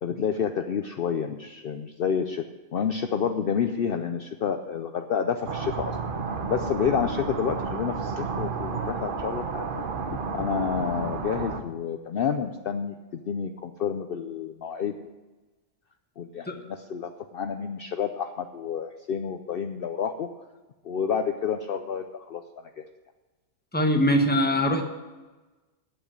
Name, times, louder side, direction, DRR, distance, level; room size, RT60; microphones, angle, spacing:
voice 1, 0.0-2.4 2.7-5.9 6.5-15.1 16.2-20.3 20.8-22.4 22.8-22.9, left 7 dB, 55° left, 7 dB, 0.7 m, -29 dB
sound 1, 5.5-11.6, right 5 dB, 50° right, 1.0 m, -31 dB
voice 2, 23.7-24.8, equal, 10° left, 4 dB, 1.1 m, -22 dB
9.0 x 8.2 x 8.7 m, 1.2 s
omnidirectional pair, 1.3 m